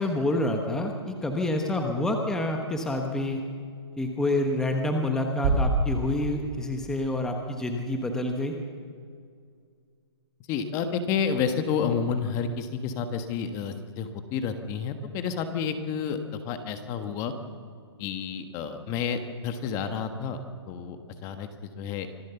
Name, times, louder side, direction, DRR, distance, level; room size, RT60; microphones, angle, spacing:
voice 1, 0.0-3.4 4.0-8.5, left 1 dB, 5° left, 3 dB, 1.1 m, -28 dB
sound 1, 5.4-7.2, right 2 dB, 30° right, 5.4 m, -27 dB
voice 2, 10.5-16.2 16.4-17.3 18.0-21.0 21.2-21.5 21.8-22.1, left 6 dB, 20° left, 8 dB, 1.3 m, -30 dB
25.5 x 16.0 x 7.0 m, 2.2 s
hypercardioid pair, 155°, 14 cm